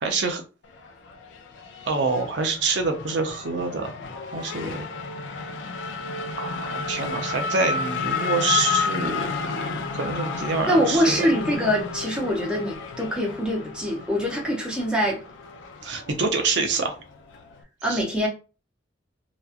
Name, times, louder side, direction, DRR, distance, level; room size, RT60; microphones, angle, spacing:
voice 1, 0.0-0.4 1.9-3.9 4.3-4.9 6.4-11.2 15.8-17.0 17.9-18.0, right 4 dB, 70° right, 0.6 m, -26 dB
Race car auto racing / Accelerating revving vroom, 0.6-17.6, left 5 dB, 85° left, 0.4 m, -32 dB
voice 2, 10.7-15.2 17.8-18.3, equal, 5° right, 0.7 m, -24 dB
2.9 x 2.3 x 2.4 m
head